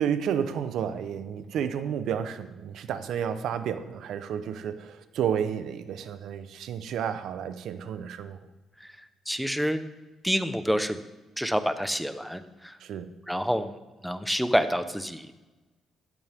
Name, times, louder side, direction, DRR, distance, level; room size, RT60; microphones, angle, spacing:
voice 1, 0.0-8.4 12.8-13.1, right 8 dB, 75° right, 11 dB, 0.9 m, -31 dB
voice 2, 9.3-9.8 10.2-11.0 11.4-13.7 14.0-15.3, equal, ahead, 10 dB, 1.1 m, -28 dB
16.5 x 14.0 x 3.7 m, 1.1 s
cardioid pair, 90°, 0 cm